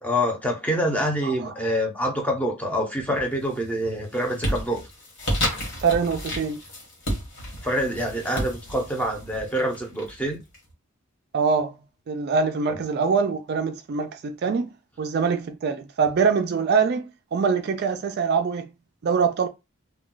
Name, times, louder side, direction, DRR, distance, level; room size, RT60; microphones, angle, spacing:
voice 1, 0.0-4.8 7.6-10.4, equal, 5° left, 0.6 m, -26 dB
voice 2, 1.2-1.5 5.8-6.6 11.3-11.7 12.1-14.7 15.0-18.7 19.0-19.5, right 5 dB, 45° right, 0.3 m, -24 dB
sound 1, 3.1-3.6 3.9-10.6, equal, 55° left, 1.3 m, -31 dB
2.3 x 2.2 x 3.7 m
head